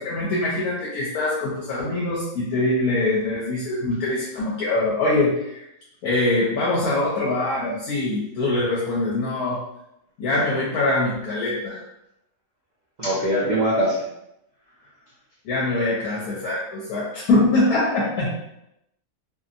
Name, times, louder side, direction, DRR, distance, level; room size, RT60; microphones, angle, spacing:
voice 1, 0.0-5.6 6.0-9.6 10.2-11.8 15.4-18.4, left 2 dB, 80° left, -6 dB, 1.1 m, -23 dB
voice 2, 13.0-14.0, equal, 70° right, -8 dB, 0.4 m, -22 dB
2.7 x 2.5 x 2.4 m, 0.84 s
omnidirectional pair, 1.6 m